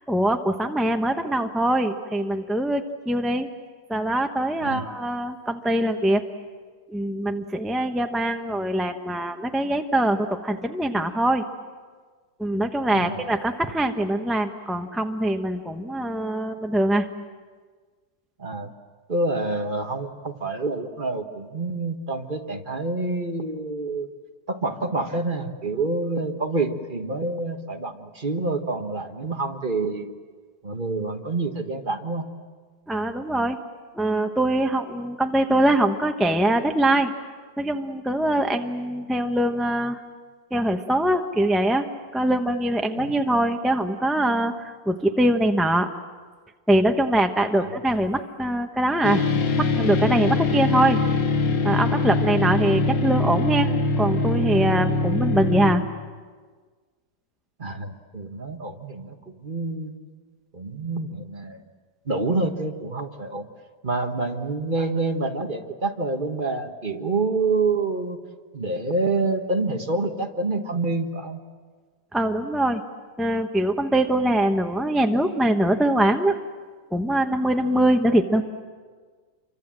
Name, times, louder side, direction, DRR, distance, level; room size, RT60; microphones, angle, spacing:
voice 1, 0.1-3.5 3.9-6.2 6.9-11.4 12.4-17.1 32.9-33.6 33.9-37.1 37.6-40.0 40.5-41.9 42.1-45.9 46.7-49.2 49.6-51.0 51.6-53.7 54.0-55.8 72.1-72.8 73.2-76.4 76.9-78.4, right 1 dB, ahead, 5 dB, 0.7 m, -23 dB
voice 2, 12.9-13.2 18.4-18.7 19.1-24.1 24.5-30.1 30.6-32.3 43.0-43.1 47.5-47.7 50.4-50.5 52.2-52.3 57.6-59.9 60.5-61.6 62.0-63.5 63.8-68.2 68.5-71.4, right 3 dB, 30° right, 4 dB, 1.5 m, -27 dB
sound 1, 49.0-55.7, left 3 dB, 75° left, 2.3 m, -23 dB
28.0 x 24.5 x 7.6 m, 1.5 s
omnidirectional pair, 2.0 m